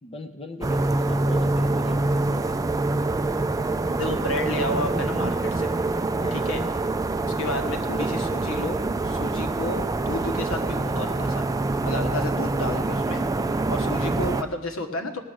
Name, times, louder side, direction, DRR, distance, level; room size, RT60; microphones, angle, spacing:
voice 1, 0.0-2.6 6.1-6.5 7.3-7.6, left 2 dB, 25° left, 7 dB, 0.6 m, -40 dB
sound 1, 0.6-14.4, right 2 dB, 15° right, 0.3 m, -25 dB
voice 2, 3.9-5.7 6.3-6.6 7.4-8.8 9.0-11.5 11.8-13.2 13.7-15.2, left 1 dB, 70° left, 4 dB, 1.5 m, -31 dB
18.0 x 7.6 x 6.3 m, 1.1 s
head